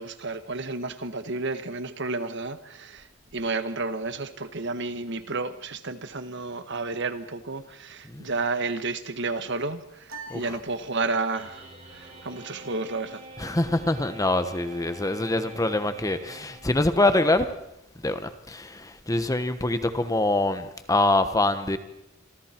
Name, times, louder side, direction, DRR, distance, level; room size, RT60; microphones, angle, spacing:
voice 1, 0.0-3.1 3.3-11.7 11.9-13.2, right 3 dB, 60° right, 1.5 m, -31 dB
sound 1, 10.1-11.6, right 3 dB, 80° right, 3.1 m, -45 dB
sound 2, 11.3-17.1, right 2 dB, 35° right, 7.8 m, -46 dB
voice 2, 13.4-17.5 18.0-21.8, left 2 dB, 15° left, 1.1 m, -24 dB
27.5 x 25.0 x 4.5 m
head